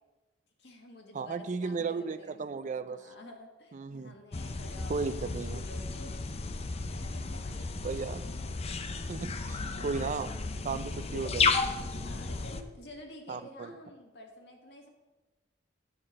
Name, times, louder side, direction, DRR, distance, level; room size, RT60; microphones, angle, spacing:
voice 1, 0.6-2.5 2.9-6.3 6.8-7.7 8.3-8.5 9.6-10.1 11.9-14.9, left 1 dB, 65° left, 2 dB, 1.7 m, -50 dB
voice 2, 1.1-3.1 3.7-4.2 4.9-5.6 7.8-8.2 9.1-10.3 10.6-11.7 13.3-13.7, right 4 dB, 40° right, 13 dB, 0.4 m, -35 dB
sound 1, 4.3-12.6, left 4 dB, 35° left, 0.5 m, -33 dB
9.6 x 5.8 x 6.5 m, 1.2 s
head